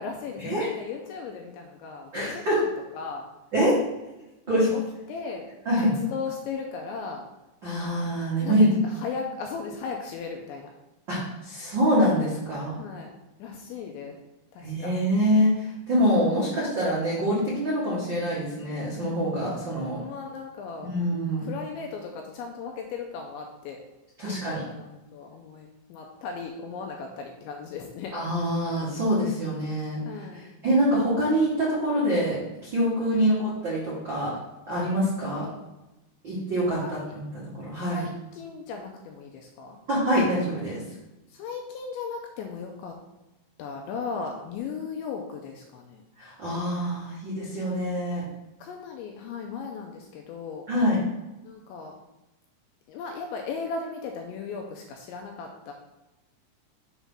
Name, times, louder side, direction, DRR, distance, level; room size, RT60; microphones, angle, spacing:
voice 1, 0.0-3.3 4.5-4.8 5.1-5.5 5.8-7.3 8.4-10.7 12.8-13.1 13.4-14.2 14.5-14.9 20.0-20.9 21.4-23.8 24.2-28.1 30.1-30.5 33.1-33.3 35.3-35.5 36.8-37.1 37.9-39.8 41.3-42.9 43.6-46.0 48.6-50.6 51.4-51.9 52.9-55.7, left 5 dB, 85° left, 2 dB, 2.7 m, -37 dB
voice 2, 2.1-2.6 3.5-3.8 4.5-4.7 5.6-5.9 7.6-8.7 11.1-12.7 14.6-20.0 20.9-21.5 24.2-24.7 28.1-30.0 30.6-34.3 34.7-35.5 36.2-36.8 37.5-38.0 39.9-40.8 46.2-48.2 50.7-51.0, equal, 70° right, -9 dB, 1.0 m, -25 dB
7.2 x 3.7 x 5.6 m, 0.99 s
omnidirectional pair, 5.8 m